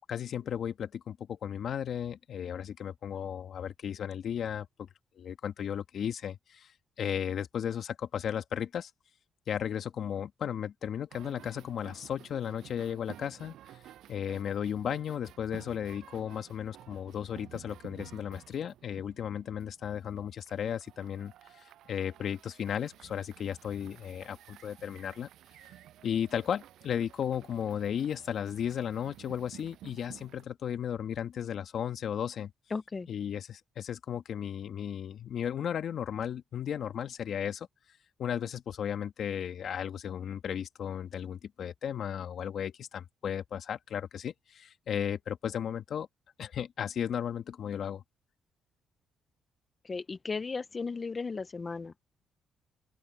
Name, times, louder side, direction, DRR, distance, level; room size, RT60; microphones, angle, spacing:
voice 1, 0.1-4.9 5.2-6.7 7.0-8.9 9.5-13.6 14.1-25.3 26.0-32.5 33.1-37.7 38.2-46.1 46.4-48.0, left 8 dB, 60° left, 2.0 m, -35 dB
sound 1, 11.1-30.4, right 12 dB, 80° right, 7.7 m, -53 dB
voice 2, 32.7-33.1 49.8-51.9, left 4 dB, 30° left, 0.9 m, -35 dB
open air
cardioid pair, 90°, 0 cm